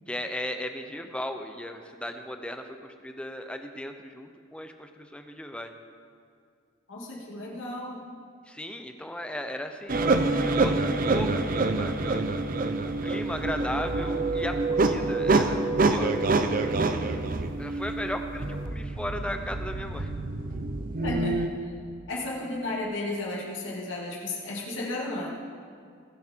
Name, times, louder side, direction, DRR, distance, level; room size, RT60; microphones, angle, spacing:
voice 1, 0.1-5.7 8.5-10.1 10.4-12.2 13.0-16.2 17.6-20.1, left 1 dB, 5° left, 6 dB, 0.6 m, -36 dB
voice 2, 6.9-8.0 21.0-21.5 22.1-25.3, left 2 dB, 70° left, -3 dB, 2.5 m, -33 dB
sound 1, 9.9-21.5, right 3 dB, 45° right, 0.6 m, -26 dB
19.5 x 7.2 x 4.5 m, 2.2 s
head